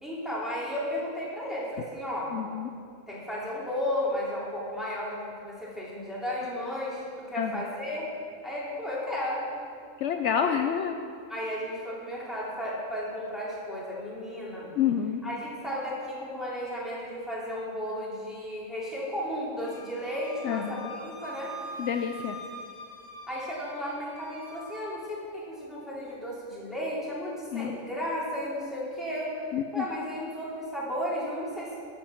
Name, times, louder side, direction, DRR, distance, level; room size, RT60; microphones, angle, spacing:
voice 1, 0.0-2.3 3.1-8.1 8.4-9.5 10.4-10.6 11.3-14.7 15.2-21.5 23.3-29.4 29.7-31.8, equal, ahead, -7 dB, 2.9 m, -34 dB
voice 2, 2.3-2.7 7.3-7.6 10.0-11.0 14.8-15.2 20.4-20.9 21.8-22.4 27.5-27.8 29.5-29.9, left 8 dB, 70° left, 6 dB, 0.9 m, -28 dB
Wind instrument woodwind instrument, 19.6-24.8, equal, 25° right, 3.3 m, -44 dB
13.5 x 6.7 x 5.8 m, 2.4 s
omnidirectional pair, 1.3 m